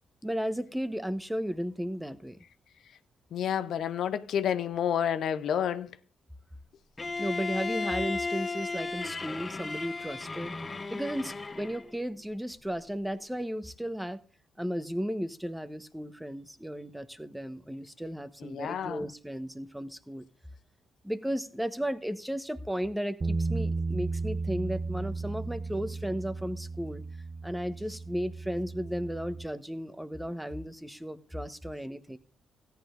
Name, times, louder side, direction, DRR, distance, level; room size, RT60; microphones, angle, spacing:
voice 1, 0.2-2.4 7.2-10.5 10.9-14.2 14.6-20.2 21.0-27.0 27.4-32.2, equal, 5° right, 1.2 m, -34 dB
voice 2, 3.3-5.9 18.4-19.0, left 9 dB, 65° left, 0.7 m, -30 dB
Bowed string instrument, 7.0-11.9, left 3 dB, 35° left, 1.2 m, -35 dB
Bass guitar, 23.2-29.5, right 3 dB, 40° right, 0.6 m, -34 dB
16.5 x 10.5 x 2.6 m
hypercardioid pair, 45°, 0 cm